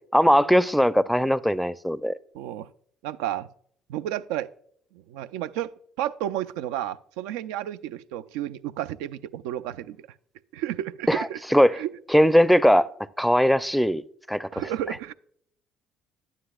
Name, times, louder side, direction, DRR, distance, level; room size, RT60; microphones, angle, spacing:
voice 1, 0.1-2.1 11.1-11.8 12.1-12.9 13.2-14.0 14.3-14.5, equal, ahead, 0.4 m, -20 dB
voice 2, 2.3-2.7 3.0-3.5 3.9-4.5 4.9-5.7 6.0-10.0 10.5-11.4 11.7-11.9 14.5-15.1, right 12 dB, 80° right, 0.3 m, -31 dB
11.0 x 9.8 x 2.3 m
hypercardioid pair, 65°, 0 cm